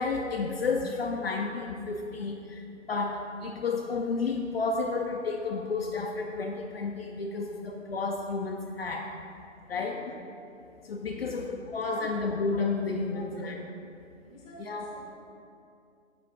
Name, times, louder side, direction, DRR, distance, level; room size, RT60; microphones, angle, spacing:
voice 1, 0.0-9.1 9.7-10.1 10.8-13.5 14.6-14.8, left 4 dB, 50° left, 1 dB, 0.7 m, -31 dB
voice 2, 9.7-10.2 11.1-11.4 11.6-12.1 13.1-13.6 14.3-15.1, left 2 dB, 10° left, -4 dB, 1.1 m, -49 dB
7.6 x 5.7 x 4.9 m, 2.4 s
hypercardioid pair, 155°, 38 cm